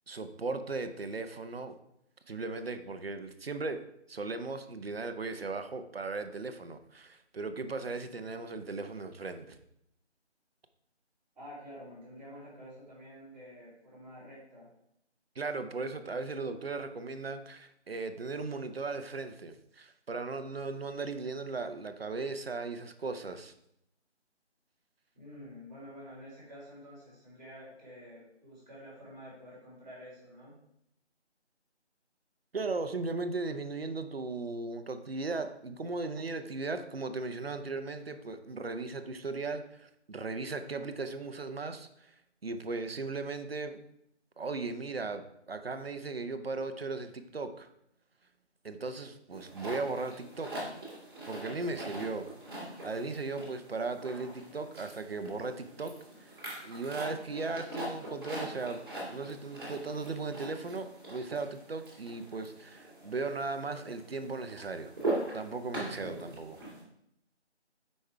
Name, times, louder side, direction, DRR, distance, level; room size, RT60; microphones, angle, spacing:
voice 1, 0.1-1.8 2.3-3.8 4.1-9.6 15.4-23.5 32.5-42.1 42.4-43.8 44.4-47.7 48.6-50.5 51.3-56.4 56.6-58.8 59.1-64.9 65.3-66.6, right 3 dB, 55° right, 8 dB, 0.8 m, -37 dB
voice 2, 11.3-14.7 25.1-30.5 52.4-52.8, equal, 5° right, -16 dB, 3.0 m, -49 dB
sound 1, 49.3-66.8, right 2 dB, 20° right, 2.1 m, -42 dB
7.9 x 5.4 x 3.4 m, 0.75 s
figure-of-eight pair, 165°, 35 cm